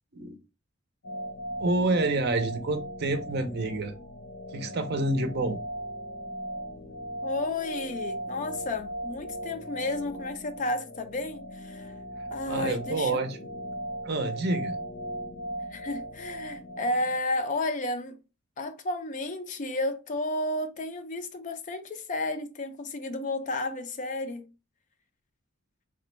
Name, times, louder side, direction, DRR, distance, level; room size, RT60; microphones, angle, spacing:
sound 1, 1.0-17.2, right 1 dB, 65° left, 0.8 m, -38 dB
voice 1, 1.6-3.9 4.5-5.6 12.5-13.4 14.0-14.8, right 2 dB, 50° right, 0.5 m, -28 dB
voice 2, 7.2-12.0 12.3-13.2 15.7-18.2 18.6-24.5, left 2 dB, 35° left, 0.4 m, -32 dB
3.3 x 2.1 x 3.0 m
head